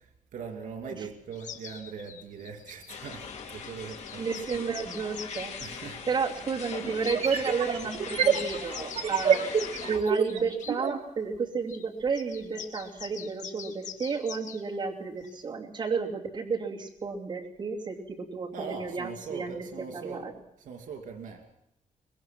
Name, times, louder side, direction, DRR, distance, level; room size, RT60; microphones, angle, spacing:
voice 1, 0.0-4.3 5.6-6.1 18.5-20.3 20.6-21.5, right 5 dB, 90° right, 5 dB, 2.8 m, -41 dB
sound 1, 1.3-5.9 7.0-7.2 7.9-10.7 11.7-11.8 12.1-14.6 15.3-15.4, left 8 dB, 75° left, 2.0 m, -44 dB
sound 2, 2.9-10.0, left 6 dB, 60° left, 2.9 m, -41 dB
voice 2, 4.2-5.5 6.1-9.4 9.9-19.7 19.9-20.3, right 5 dB, 35° right, -1 dB, 2.7 m, -32 dB
sound 3, 5.6-5.7 7.0-11.0, right 7 dB, 55° right, 1.8 m, -27 dB
23.5 x 21.5 x 6.1 m, 0.82 s
wide cardioid pair, 175°, 13 cm